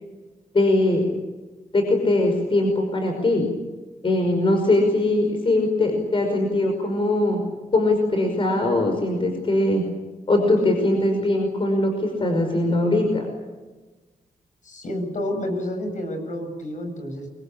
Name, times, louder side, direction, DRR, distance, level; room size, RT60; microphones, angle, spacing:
voice 1, 0.5-1.1 1.7-3.5 4.0-7.4 7.7-9.8 10.3-13.3, left 2 dB, 35° left, 3 dB, 5.5 m, -21 dB
voice 2, 14.6-17.3, left 1 dB, 60° left, 5 dB, 7.9 m, -29 dB
28.5 x 23.5 x 8.8 m, 1.2 s
wide cardioid pair, 170°, 15 cm